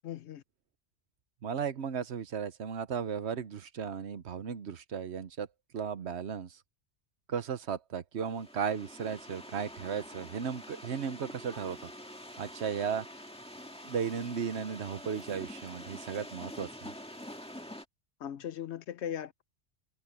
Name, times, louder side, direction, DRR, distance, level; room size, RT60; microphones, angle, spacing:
voice 1, 0.0-0.4 18.2-19.4, left 10 dB, 75° left, 1.0 m, -38 dB
voice 2, 1.4-5.5 5.7-6.6 7.3-11.9 12.4-13.1 13.8-16.9, right 7 dB, 70° right, 1.2 m, -35 dB
sound 1, 8.2-17.8, equal, 5° left, 1.9 m, -46 dB
omnidirectional pair, 1.2 m